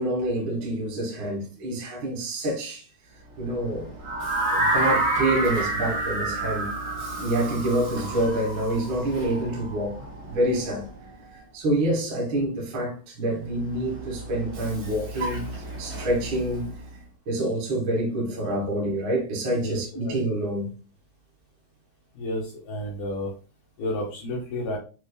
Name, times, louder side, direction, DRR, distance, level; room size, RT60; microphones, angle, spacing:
voice 1, 0.0-2.8 3.4-3.9 4.5-6.7 7.2-10.0 10.3-10.9 11.3-16.7 17.2-20.7, right 1 dB, 80° right, 1.1 m, -27 dB
Vehicle, 3.0-11.5 13.2-17.1, right 2 dB, 60° right, 1.6 m, -39 dB
sound 1, 4.0-10.0, right 2 dB, 15° right, 1.3 m, -27 dB
voice 2, 19.6-20.2 22.2-23.3 23.8-24.8, left 1 dB, 85° left, 1.8 m, -31 dB
7.3 x 2.7 x 2.2 m
omnidirectional pair, 4.9 m